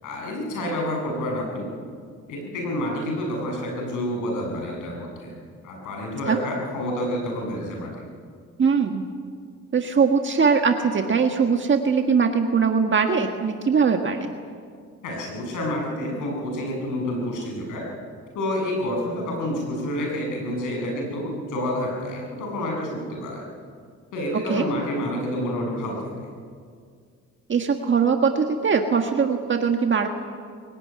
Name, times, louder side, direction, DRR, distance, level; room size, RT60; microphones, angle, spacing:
voice 1, 0.0-1.7 2.3-5.4 5.6-7.9 15.0-17.8 18.3-23.5 24.1-26.1, left 1 dB, 85° left, 0 dB, 7.8 m, -28 dB
voice 2, 8.6-9.0 9.7-14.3 24.5-24.6 27.5-30.1, right 5 dB, 40° right, 4 dB, 1.6 m, -21 dB
22.0 x 17.5 x 9.8 m, 2.1 s
cardioid pair, 90°, 30 cm